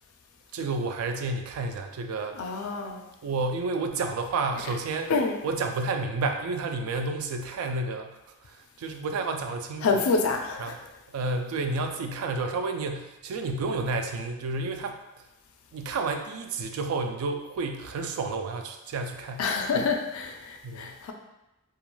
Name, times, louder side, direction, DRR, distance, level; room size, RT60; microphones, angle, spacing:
voice 1, 0.5-2.7 3.2-5.1 5.4-10.0 10.6-10.8 11.1-15.0 15.7-19.5 19.7-19.9 20.6-21.1, right 3 dB, 80° right, 5 dB, 0.3 m, -31 dB
voice 2, 2.4-3.0 5.1-5.4 9.8-10.8 19.4-21.1, left 4 dB, 80° left, 4 dB, 0.4 m, -27 dB
2.3 x 2.2 x 3.0 m, 0.96 s
head